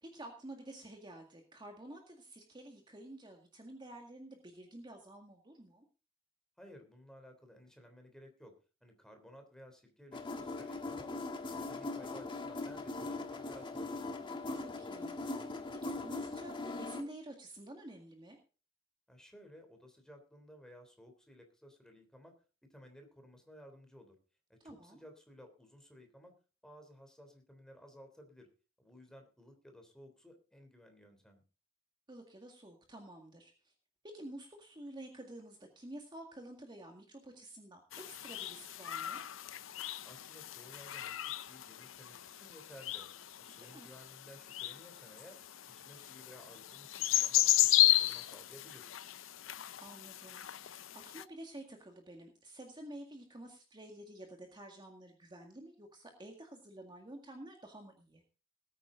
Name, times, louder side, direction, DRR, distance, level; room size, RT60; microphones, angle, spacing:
voice 1, 0.0-5.9 14.5-15.2 15.8-18.4 24.6-25.0 32.1-33.7 34.1-39.2 43.6-43.9 49.8-58.2, right 1 dB, 25° right, 3 dB, 2.0 m, -50 dB
voice 2, 6.6-8.5 8.8-11.1 11.7-14.0 19.1-22.3 22.6-24.2 24.5-26.3 26.6-28.5 28.8-31.4 40.0-43.1 43.4-45.4 45.7-48.9, equal, 5° left, 5 dB, 3.4 m, -56 dB
sound 1, 10.1-17.0, left 2 dB, 25° left, 1.8 m, -40 dB
sound 2, 37.9-51.2, left 14 dB, 70° left, 0.6 m, -34 dB
19.5 x 9.1 x 3.9 m, 0.35 s
head